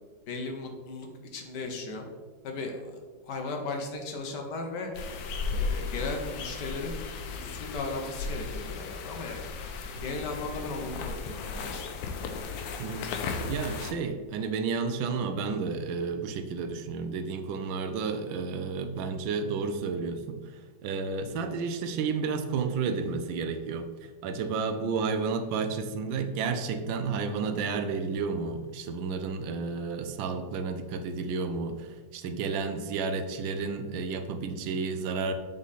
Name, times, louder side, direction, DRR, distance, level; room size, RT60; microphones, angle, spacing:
voice 1, 0.3-2.1 2.4-4.9 5.5-7.0 7.4-9.4 10.0-11.9, left 3 dB, 65° left, 3 dB, 1.4 m, -36 dB
sound 1, 4.9-13.9, left 4 dB, 90° left, 1.4 m, -35 dB
voice 2, 13.5-23.9 24.2-35.3, right 5 dB, 85° right, 8 dB, 1.4 m, -31 dB
7.2 x 3.8 x 4.0 m, 1.4 s
omnidirectional pair, 2.1 m